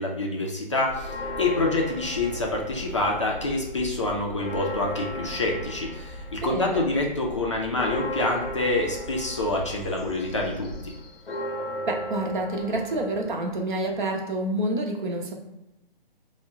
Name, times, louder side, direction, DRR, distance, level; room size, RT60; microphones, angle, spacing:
voice 1, 0.0-10.9, left 2 dB, 35° left, -1 dB, 0.4 m, -27 dB
sound 1, 0.9-10.9, right 1 dB, 15° right, 0.8 m, -42 dB
Church bell, 1.0-3.3 3.7-3.8 4.1-14.2, left 1 dB, 80° left, 0.6 m, -37 dB
voice 2, 6.4-6.9 11.9-15.4, right 1 dB, 55° right, 2 dB, 0.7 m, -28 dB
3.4 x 2.1 x 3.5 m, 0.95 s
figure-of-eight pair, 145°, 29 cm